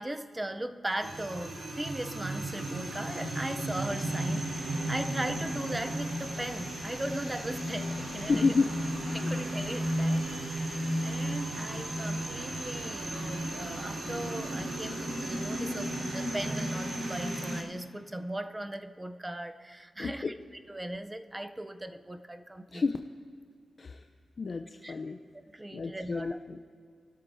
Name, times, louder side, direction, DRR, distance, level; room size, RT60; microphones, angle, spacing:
voice 1, 0.0-8.5 9.1-10.8 11.0-20.3 20.7-22.8 24.8-24.9 25.3-26.4, right 1 dB, 15° right, 8 dB, 0.5 m, -38 dB
sound 1, 1.0-17.6, right 1 dB, 70° right, 3.9 m, -34 dB
voice 2, 8.3-8.7 9.2-9.4 20.0-20.3 22.7-23.0 23.8-24.0 24.4-25.2 25.7-26.6, left 4 dB, 40° left, 5 dB, 0.5 m, -30 dB
27.5 x 12.5 x 2.7 m, 2.2 s
wide cardioid pair, 135°, 0 cm